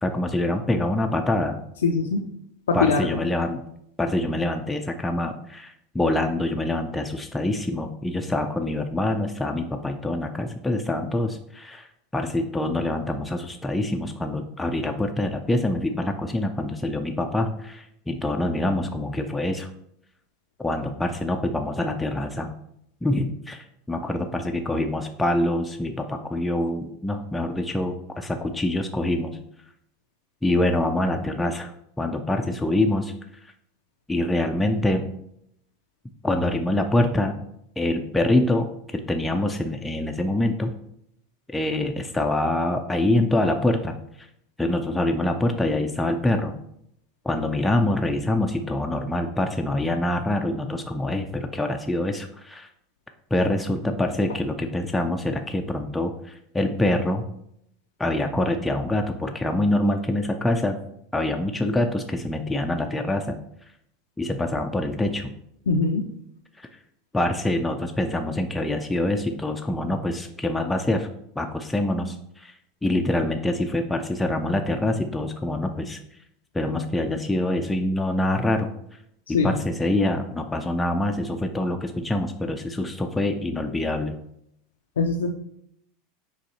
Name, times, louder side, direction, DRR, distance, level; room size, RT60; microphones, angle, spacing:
voice 1, 0.0-1.6 2.7-3.6 4.0-11.9 12.1-19.7 20.6-22.5 23.0-29.4 30.4-33.1 34.1-35.1 36.2-37.4 37.8-40.7 41.5-44.3 44.6-46.6 47.2-52.7 53.3-57.3 58.0-60.8 61.1-63.4 64.2-65.3 66.6-66.7 67.1-71.1 71.4-72.5 72.8-76.0 76.5-78.7 79.3-84.2, left 1 dB, 10° left, 4 dB, 0.4 m, -25 dB
voice 2, 1.8-2.3 2.7-3.1 65.7-66.1 79.3-79.6 85.0-85.3, left 4 dB, 85° left, 3 dB, 0.3 m, -22 dB
5.1 x 3.2 x 2.8 m, 0.74 s
hypercardioid pair, 95°, 0 cm